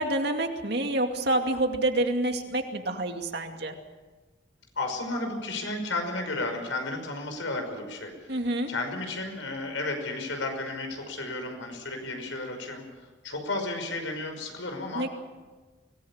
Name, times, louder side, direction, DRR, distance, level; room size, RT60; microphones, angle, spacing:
voice 1, 0.0-3.7 8.3-8.7 14.9-15.1, right 1 dB, 60° right, 4 dB, 2.4 m, -27 dB
voice 2, 4.8-8.4 8.7-12.8 13.2-15.0, left 2 dB, 85° left, 4 dB, 5.6 m, -33 dB
24.5 x 18.5 x 7.3 m, 1.3 s
head